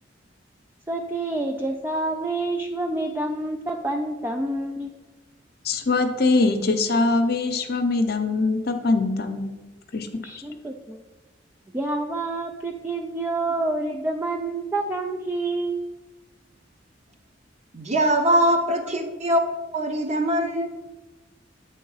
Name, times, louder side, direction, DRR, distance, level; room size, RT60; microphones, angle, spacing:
voice 1, 0.9-4.9 10.2-11.0 11.7-15.8, right 2 dB, 10° right, 2 dB, 0.3 m, -28 dB
voice 2, 5.6-9.6 9.9-10.1, left 3 dB, 55° left, 7 dB, 0.7 m, -22 dB
voice 3, 17.7-19.4 19.7-20.7, right 1 dB, 35° right, 4 dB, 0.8 m, -22 dB
8.4 x 3.6 x 5.5 m, 1.2 s
head